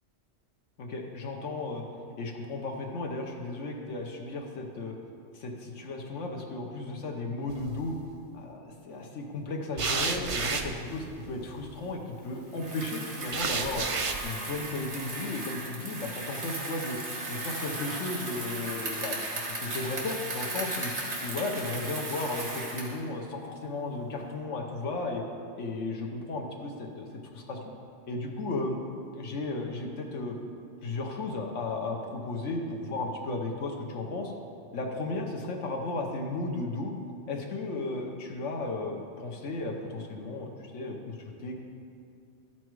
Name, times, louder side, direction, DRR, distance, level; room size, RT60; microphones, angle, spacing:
voice 1, 0.8-1.8 2.2-4.9 5.3-7.9 8.3-13.9 14.2-17.0 17.3-19.2 19.6-20.9 21.2-25.2 25.6-27.1 27.3-27.6 28.1-28.8 29.1-30.4 30.8-34.3 34.7-36.9 37.3-41.6, left 2 dB, 85° left, 1 dB, 1.3 m, -34 dB
sound 1, 7.5-8.0 9.8-11.8 13.3-14.2, right 4 dB, 50° right, 0.4 m, -32 dB
Bicycle, 12.5-23.0, right 2 dB, 65° right, 2.0 m, -36 dB
12.5 x 5.9 x 4.6 m, 2.4 s
omnidirectional pair, 1.2 m